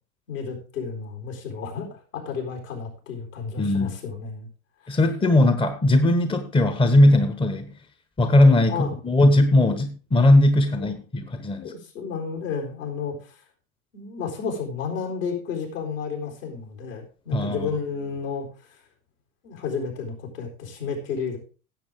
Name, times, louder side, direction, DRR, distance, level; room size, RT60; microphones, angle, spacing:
voice 1, 0.3-4.5 4.8-5.0 8.7-8.9 10.7-10.9 11.6-13.4 13.9-18.8 19.4-21.4, left 5 dB, 65° left, 2 dB, 4.4 m, -32 dB
voice 2, 3.6-3.9 4.9-7.7 8.2-11.7 17.3-17.7, left 1 dB, 10° left, 9 dB, 1.0 m, -19 dB
16.0 x 7.6 x 3.6 m, 0.37 s
figure-of-eight pair, 80°, 42 cm